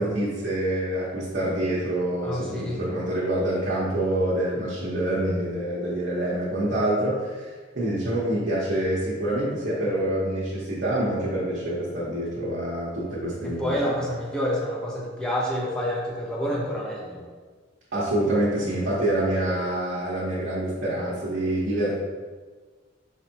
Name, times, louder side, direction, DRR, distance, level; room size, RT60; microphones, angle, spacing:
voice 1, 0.0-13.9 17.9-22.0, right 1 dB, 60° right, -9 dB, 0.9 m, -26 dB
voice 2, 2.2-2.8 13.4-17.2, equal, 5° left, -5 dB, 0.8 m, -28 dB
4.4 x 3.2 x 2.8 m, 1.4 s
head